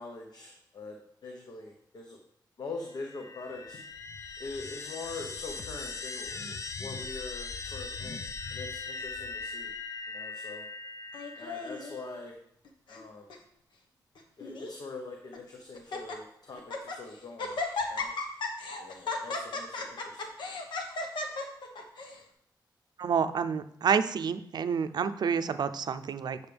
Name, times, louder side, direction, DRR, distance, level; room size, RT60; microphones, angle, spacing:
voice 1, 0.0-2.2 2.6-3.8 4.4-8.2 8.5-9.7 10.1-10.7 11.4-12.4 12.9-13.3 14.4-18.1 18.8-20.3, left 3 dB, 60° left, 2 dB, 0.9 m, -43 dB
sound 1, 2.9-12.2, left 4 dB, 45° left, 0.5 m, -40 dB
Laughter, 11.1-12.0 12.7-13.0 13.3-13.4 14.2-14.8 15.3-15.4 15.8-16.2 16.6-17.0 17.4-22.2, left 3 dB, 85° left, 1.1 m, -35 dB
voice 2, 23.0-26.4, right 6 dB, 65° right, 11 dB, 0.5 m, -29 dB
8.8 x 6.5 x 3.4 m, 0.72 s
wide cardioid pair, 115°, 8 cm